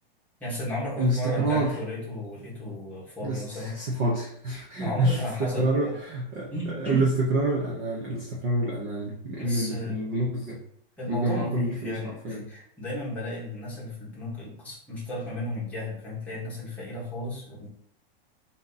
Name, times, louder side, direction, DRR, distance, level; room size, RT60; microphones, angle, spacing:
voice 1, 0.4-3.8 4.8-5.9 6.5-7.1 9.4-10.0 11.0-17.7, left 1 dB, 5° left, -8 dB, 1.1 m, -34 dB
voice 2, 1.0-1.8 3.2-10.6 11.1-12.4, right 1 dB, 20° right, -3 dB, 0.4 m, -27 dB
3.5 x 2.7 x 3.8 m, 0.65 s
supercardioid pair, 170°, 29 cm